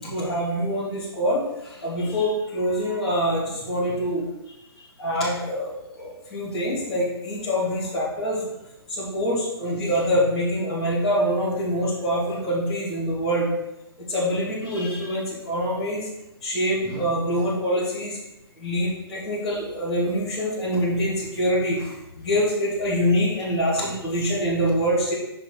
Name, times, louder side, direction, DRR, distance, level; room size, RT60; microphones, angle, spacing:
voice 1, 0.0-8.5 8.9-13.5 14.1-16.1 16.4-18.2 18.5-25.1, equal, 5° left, -15 dB, 1.5 m, -25 dB
6.2 x 3.9 x 4.9 m, 0.92 s
hypercardioid pair, 180°, 13 cm